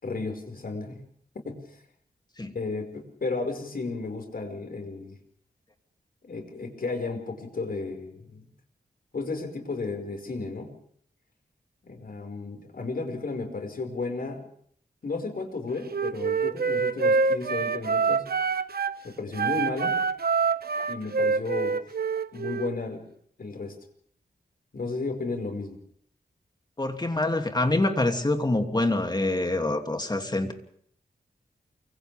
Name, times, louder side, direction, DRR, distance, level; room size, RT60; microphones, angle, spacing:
voice 1, 0.0-1.0 1.5-1.8 2.5-5.2 6.2-8.4 9.1-10.7 11.9-14.4 15.0-18.3 19.0-20.0 20.9-21.8 22.3-23.0 23.4-23.7 24.7-25.8, left 3 dB, 65° left, 5 dB, 5.5 m, -33 dB
Wind instrument woodwind instrument, 15.9-19.0 19.3-22.7, right 5 dB, 70° right, 1.1 m, -26 dB
voice 2, 26.8-30.5, left 2 dB, 25° left, 5 dB, 2.8 m, -26 dB
29.0 x 25.5 x 3.6 m, 0.63 s
wide cardioid pair, 90°, 17 cm